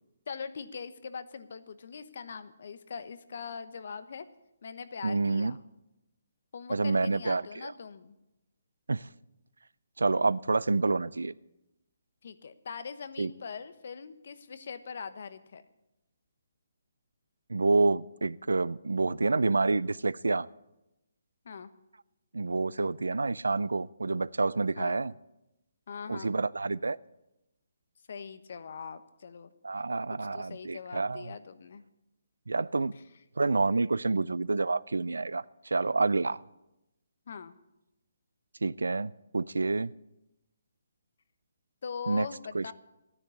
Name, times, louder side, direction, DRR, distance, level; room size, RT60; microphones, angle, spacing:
voice 1, 0.3-4.3 4.6-5.6 6.5-8.2 12.2-15.6 21.4-21.7 24.8-25.0 25.9-26.3 28.1-29.5 30.2-31.8 37.3-37.5 41.8-42.7, left 6 dB, 60° left, 1.1 m, -42 dB
voice 2, 5.0-5.6 6.7-7.7 8.9-9.1 10.0-11.3 13.2-13.3 17.5-20.5 22.3-25.1 26.1-27.0 29.6-31.3 32.5-32.9 33.4-36.4 38.6-39.9 42.1-42.3 42.5-42.7, right 3 dB, 90° right, 0.4 m, -28 dB
13.0 x 10.0 x 8.5 m
hypercardioid pair, 150°, 0 cm